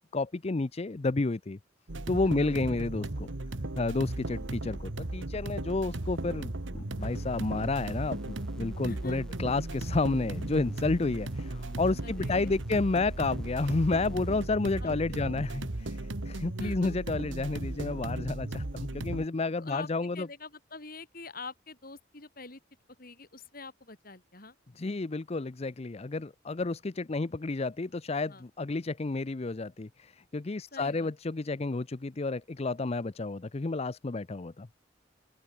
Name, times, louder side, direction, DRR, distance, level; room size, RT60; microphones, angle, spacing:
voice 1, 0.1-1.6 2.1-3.3 3.8-20.3 24.8-34.7, left 3 dB, 35° left, 0.6 m, -31 dB
sound 1, 1.9-19.3, right 2 dB, 90° right, 1.5 m, -36 dB
sound 2, 7.0-14.4, equal, 5° left, 2.0 m, -52 dB
voice 2, 8.8-9.2 12.0-12.8 14.8-15.3 16.6-17.0 19.6-22.6 23.0-24.6 28.3-28.4 30.7-31.1, left 3 dB, 50° left, 5.6 m, -45 dB
open air
head